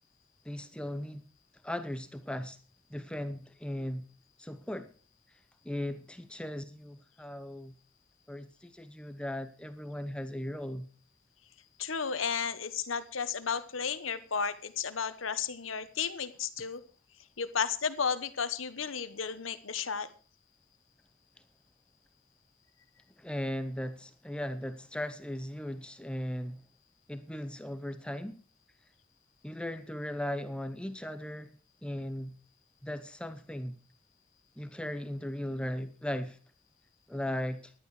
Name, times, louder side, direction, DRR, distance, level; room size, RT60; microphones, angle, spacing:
voice 1, 0.4-1.2 1.6-2.6 2.9-4.0 4.4-4.9 5.6-7.7 8.3-10.9 23.2-26.6 27.1-28.4 29.4-31.5 31.8-32.3 32.8-33.8 34.6-36.4 37.1-37.7, left 1 dB, 5° left, 0.7 m, -37 dB
voice 2, 11.8-16.8 17.4-20.1, left 6 dB, 90° left, 1.1 m, -33 dB
14.5 x 11.0 x 4.9 m
head